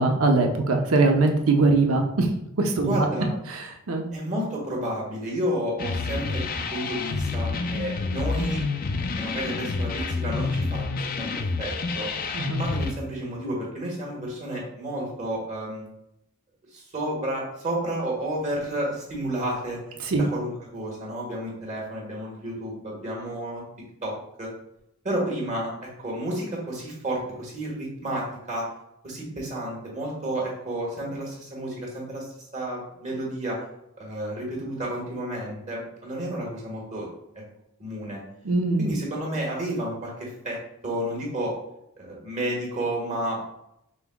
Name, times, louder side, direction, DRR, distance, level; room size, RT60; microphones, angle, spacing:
voice 1, 0.0-2.3 2.6-3.1 3.5-3.6 3.9-4.1 12.3-12.6 20.1-20.2 38.4-38.9, right 3 dB, 70° right, 3 dB, 0.7 m, -21 dB
voice 2, 2.8-3.3 4.1-8.7 9.1-11.3 11.6-12.1 12.6-15.9 16.7-19.8 20.1-23.6 24.0-24.5 25.0-28.7 29.0-33.6 34.0-37.1 37.3-37.4 37.8-38.2 38.8-41.5 42.0-43.5, right 1 dB, 30° right, -2 dB, 1.4 m, -31 dB
sound 1, 5.8-12.9, left 4 dB, 40° left, 0.3 m, -28 dB
5.5 x 3.5 x 2.2 m, 0.82 s
head